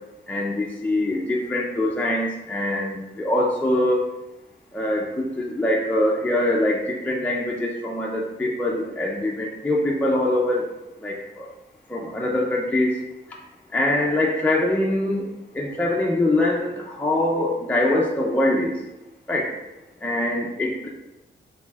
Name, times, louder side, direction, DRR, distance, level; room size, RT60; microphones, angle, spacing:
voice 1, 0.3-4.1 4.7-10.6 11.0-11.5 11.9-13.0 13.7-15.2 15.5-18.7 19.3-19.5 20.0-20.9, left 1 dB, 10° left, -3 dB, 0.4 m, -23 dB
4.2 x 3.9 x 2.3 m, 0.99 s
wide cardioid pair, 170°, 20 cm